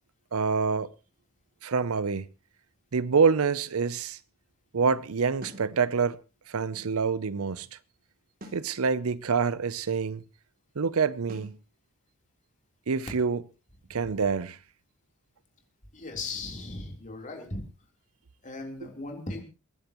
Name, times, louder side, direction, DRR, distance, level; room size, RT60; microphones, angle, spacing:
voice 1, 0.3-0.9 1.6-2.3 2.9-4.2 4.7-6.2 6.5-7.8 8.5-10.2 10.8-11.6 12.9-13.4 13.9-14.6, right 5 dB, 90° right, 0.6 m, -26 dB
sound 1, 5.4-5.7 8.4-8.7 11.3-11.6, equal, 45° right, 2.8 m, -45 dB
voice 2, 15.9-17.7 18.4-19.4, left 3 dB, 35° left, 3.7 m, -37 dB
28.5 x 10.5 x 3.0 m
head